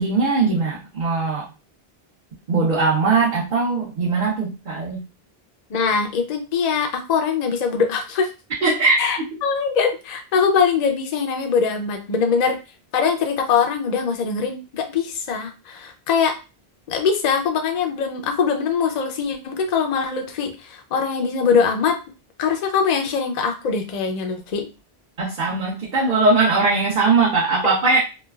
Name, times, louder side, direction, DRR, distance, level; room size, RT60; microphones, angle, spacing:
voice 1, 0.0-1.5 2.5-5.0 8.6-9.1 25.2-28.0, right 3 dB, 50° right, -6 dB, 0.9 m, -20 dB
voice 2, 5.7-8.3 9.0-12.6 12.9-16.4 16.9-22.0 22.4-24.7, left 6 dB, 50° left, 4 dB, 0.6 m, -22 dB
3.2 x 2.3 x 2.3 m, 0.30 s
omnidirectional pair, 1.1 m